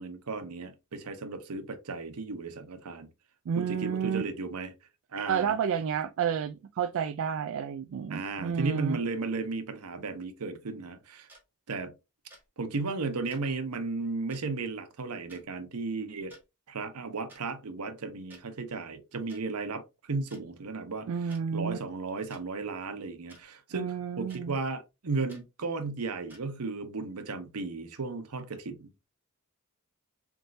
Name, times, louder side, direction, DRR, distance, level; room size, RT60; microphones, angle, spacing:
voice 1, 0.0-3.1 3.6-4.7 5.1-5.5 8.1-11.3 11.7-11.9 12.6-16.4 16.7-28.9, right 3 dB, 85° right, 0.8 m, -35 dB
voice 2, 3.5-4.2 5.3-9.0 21.1-21.8 23.7-24.6, right 7 dB, 65° right, 0.3 m, -30 dB
sound 1, 11.3-11.4 12.3-12.5 13.3-13.4 14.3-14.4 15.3-15.4 16.2-16.4 17.3-17.4 18.3-18.4 19.3-19.4 20.3-20.4 21.3-21.4 22.3-22.4 23.3-23.4 24.3-24.4 25.3-25.4 26.3-26.4, right 1 dB, 10° right, 1.4 m, -53 dB
3.9 x 3.6 x 2.6 m
head